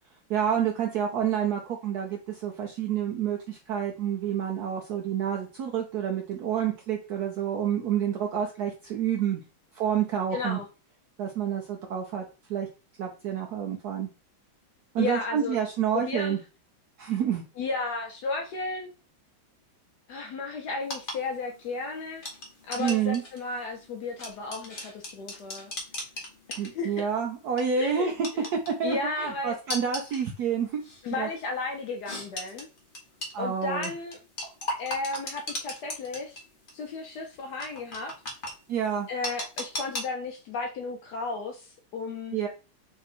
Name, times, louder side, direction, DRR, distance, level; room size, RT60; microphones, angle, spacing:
voice 1, 0.3-9.4 9.7-10.6 11.2-12.2 12.5-12.7 13.0-14.1 14.9-16.4 17.0-17.4 22.8-23.2 26.6-30.8 31.2-31.3 33.3-33.9 38.7-39.1 42.3-42.5, right 8 dB, 75° right, 2 dB, 0.9 m, -28 dB
voice 2, 10.3-10.7 15.0-15.6 15.9-16.4 17.6-18.9 20.1-22.2 22.7-25.7 26.5-27.1 27.8-28.4 28.8-29.5 31.0-32.7 33.4-34.2 34.8-36.4 36.7-38.1 39.1-42.4, left 3 dB, 70° left, 3 dB, 1.0 m, -34 dB
sound 1, 20.8-27.1 27.4-27.7 28.2-29.0 29.7-30.2 30.8-31.0 32.1-33.3 33.8-36.4 36.7-36.8 37.6-38.5 39.2-40.0, left 1 dB, 45° left, 0.7 m, -36 dB
3.6 x 2.7 x 4.1 m, 0.33 s
omnidirectional pair, 2.2 m